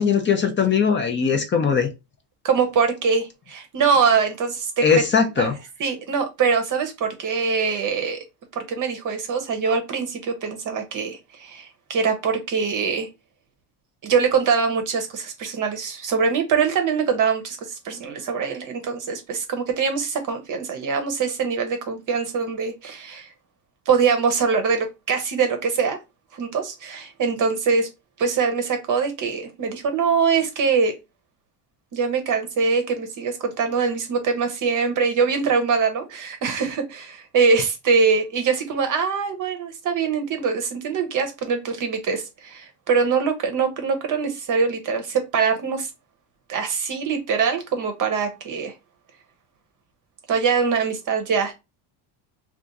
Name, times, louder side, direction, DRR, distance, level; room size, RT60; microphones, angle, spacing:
voice 1, 0.0-1.9 4.8-5.5, left 6 dB, 25° left, 0.5 m, -20 dB
voice 2, 2.4-4.9 5.4-5.5 5.8-8.2 8.5-13.1 14.0-23.3 23.9-26.0 26.3-27.9 28.2-30.9 31.9-45.9 46.5-48.7 50.3-51.5, right 5 dB, 40° right, 0.7 m, -23 dB
2.5 x 2.4 x 3.9 m
cardioid pair, 120°, 47 cm